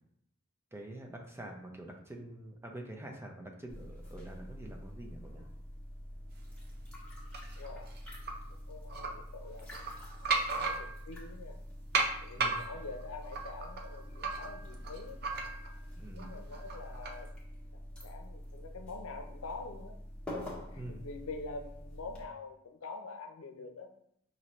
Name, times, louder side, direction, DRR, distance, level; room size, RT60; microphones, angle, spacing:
voice 1, 0.7-5.5 12.4-12.6 16.0-16.3 20.8-21.0, right 1 dB, 10° right, 1 dB, 0.6 m, -46 dB
sound 1, 3.7-22.3, equal, 5° left, 1.1 m, -46 dB
sound 2, 7.3-8.3 8.9-9.1 9.6-11.2 11.9-15.8 16.2-17.2, right 4 dB, 50° right, 0.6 m, -35 dB
voice 2, 7.6-7.9 8.7-10.0 10.5-11.6 12.2-15.2 16.1-17.3 18.0-20.0 20.7-23.9, left 3 dB, 90° left, 5 dB, 0.6 m, -45 dB
5.6 x 2.7 x 3.1 m, 0.73 s
head